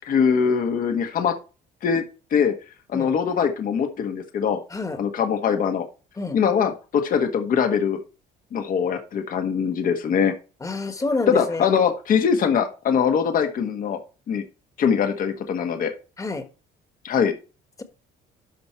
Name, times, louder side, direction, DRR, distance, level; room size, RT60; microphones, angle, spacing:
voice 1, 0.0-1.3 1.8-2.0 2.3-2.5 2.9-4.6 5.0-5.8 6.3-8.0 8.5-10.3 11.3-14.0 14.3-14.4 14.8-15.9 17.0-17.3, left 7 dB, 55° left, 6 dB, 1.5 m, -22 dB
voice 2, 10.6-11.7 16.2-16.4, left 3 dB, 20° left, 8 dB, 1.5 m, -28 dB
12.0 x 4.4 x 4.5 m, 0.33 s
cardioid pair, 110°, 17 cm